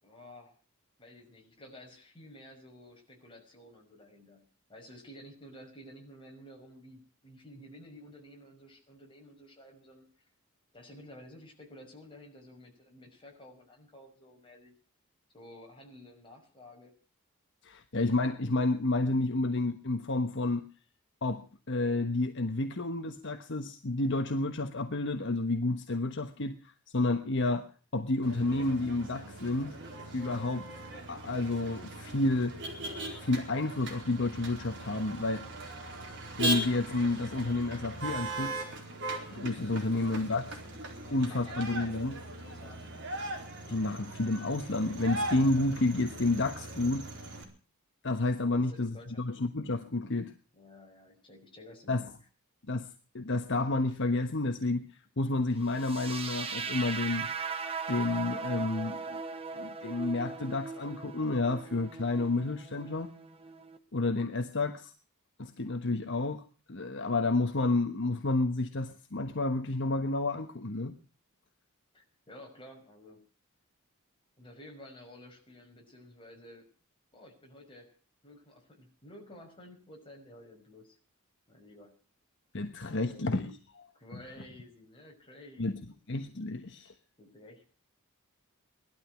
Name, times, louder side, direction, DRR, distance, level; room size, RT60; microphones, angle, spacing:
voice 1, 0.0-0.6 1.0-4.4 4.7-10.3 10.7-14.7 15.3-16.9 39.7-40.5 41.0-42.1 42.4-43.0 48.4-49.5 50.5-52.1 71.9-73.2 74.4-76.7 77.1-77.9 78.2-81.0 81.5-81.9 83.1-83.6 83.9-86.0 87.2-87.6, left 1 dB, 25° left, 1 dB, 5.7 m, -52 dB
voice 2, 17.6-20.6 21.2-26.6 26.9-27.7 27.9-29.8 30.1-30.7 31.1-32.6 33.2-35.4 36.4-38.7 39.3-40.4 41.1-42.2 43.7-47.1 48.0-50.3 51.9-52.1 52.7-52.9 53.1-54.9 55.2-57.3 57.9-59.2 59.6-63.1 63.9-64.9 65.4-66.4 66.7-71.0 82.5-83.5 85.6-85.7 86.1-86.9, left 2 dB, 55° left, 6 dB, 1.2 m, -30 dB
Motor vehicle (road), 28.2-47.4, right 1 dB, 55° right, 4.5 m, -39 dB
sound 1, 55.7-63.8, right 5 dB, 25° right, 1.2 m, -39 dB
19.0 x 12.5 x 6.2 m, 0.39 s
head